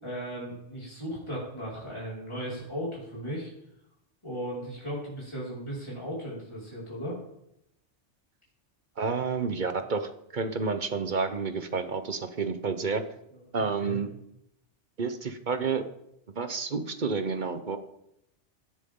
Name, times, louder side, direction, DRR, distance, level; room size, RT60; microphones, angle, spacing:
voice 1, 0.0-3.5 4.2-7.2 13.5-14.0, equal, 25° left, -7 dB, 5.5 m, -36 dB
voice 2, 9.0-13.1 13.5-14.1 15.0-15.9 16.4-17.8, right 4 dB, 45° right, 9 dB, 1.0 m, -30 dB
16.5 x 10.5 x 3.8 m, 0.79 s
omnidirectional pair, 1.2 m